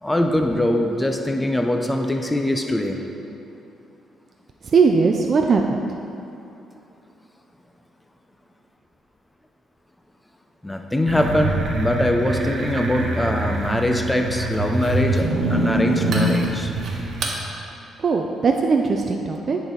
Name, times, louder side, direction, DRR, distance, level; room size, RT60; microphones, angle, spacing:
voice 1, 0.0-3.0 10.6-16.7, left 1 dB, 10° left, 3 dB, 0.6 m, -22 dB
voice 2, 4.7-6.0 18.0-19.6, right 4 dB, 45° right, 2 dB, 0.4 m, -19 dB
sound 1, 11.1-17.4, right 2 dB, 60° right, 1.0 m, -24 dB
9.9 x 4.1 x 3.9 m, 2.8 s
cardioid pair, 90°, 0 cm